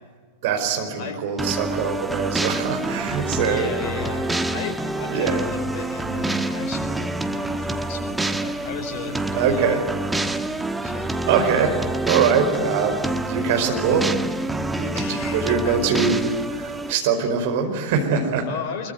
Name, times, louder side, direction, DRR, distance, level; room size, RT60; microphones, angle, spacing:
voice 1, 0.4-4.2 5.1-5.5 9.3-9.9 11.3-14.1 14.8-18.5, right 6 dB, 50° right, 5 dB, 4.8 m, -23 dB
sound 1, 1.4-16.9, right 2 dB, 5° right, 1.3 m, -27 dB
voice 2, 3.4-9.8 10.8-11.2 14.9-15.8 18.5-18.9, left 7 dB, 45° left, 7 dB, 4.5 m, -35 dB
25.5 x 23.5 x 9.3 m, 1.5 s
figure-of-eight pair, 90°, 0 cm